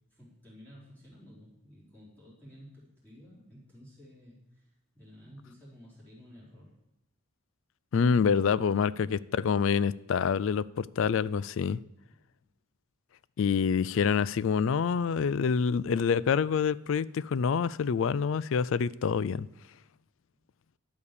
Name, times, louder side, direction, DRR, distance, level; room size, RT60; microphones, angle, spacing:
voice 1, 0.1-6.8, equal, 10° left, -8 dB, 3.8 m, -53 dB
voice 2, 7.9-11.8 13.4-19.5, left 6 dB, 65° left, 20 dB, 0.3 m, -27 dB
11.5 x 6.6 x 6.8 m, 0.92 s
head